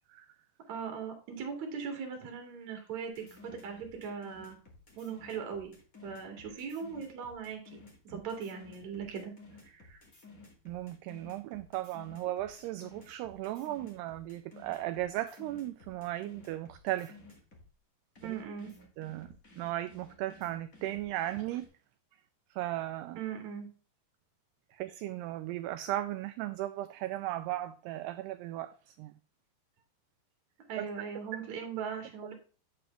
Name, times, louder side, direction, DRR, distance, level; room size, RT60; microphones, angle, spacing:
voice 1, 0.7-4.6 5.0-5.7 6.0-7.8 8.1-9.3 9.6-10.0 18.2-18.7 23.1-23.7 30.7-32.3, right 6 dB, 45° right, 3.2 m, -39 dB
sound 1, 3.1-17.7 18.1-21.7, left 3 dB, 40° left, 1.2 m, -55 dB
voice 2, 10.7-17.2 18.2-18.4 19.0-19.3 19.6-21.7 22.5-23.2 24.7-29.1 30.8-30.9, right 14 dB, 90° right, 2.3 m, -36 dB
8.7 x 7.0 x 3.3 m
omnidirectional pair, 5.2 m